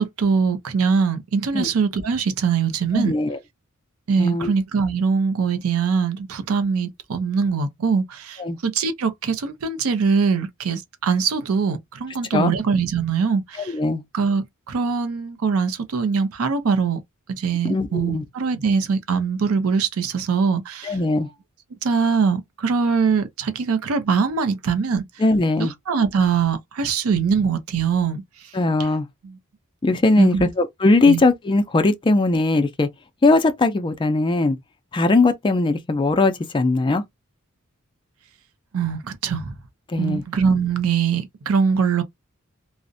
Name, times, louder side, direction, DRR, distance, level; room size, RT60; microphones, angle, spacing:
voice 1, 0.0-3.1 4.1-13.7 14.1-17.0 17.3-21.0 21.8-25.1 25.6-28.2 29.2-29.4 30.2-30.5 31.1-31.2 38.7-39.5 40.0-42.0, right 5 dB, 85° right, 0.5 m, -22 dB
voice 2, 2.9-3.4 4.2-4.5 8.4-8.6 12.3-12.5 13.7-14.0 17.6-18.3 20.8-21.3 25.2-25.7 28.5-29.1 29.8-32.9 33.2-34.6 34.9-37.0 39.9-40.2, left 2 dB, 25° left, 0.3 m, -19 dB
2.5 x 2.0 x 2.5 m
head